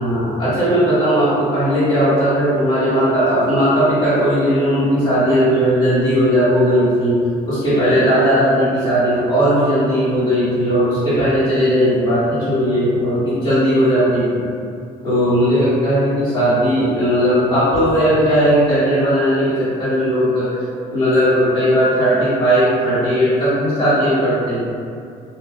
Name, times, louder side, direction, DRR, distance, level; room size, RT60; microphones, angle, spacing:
voice 1, 0.0-7.2 7.4-14.5 15.0-20.5 20.9-24.7, equal, 25° left, -16 dB, 1.2 m, -17 dB
3.1 x 2.5 x 2.3 m, 2.4 s
cardioid pair, 110°, 17 cm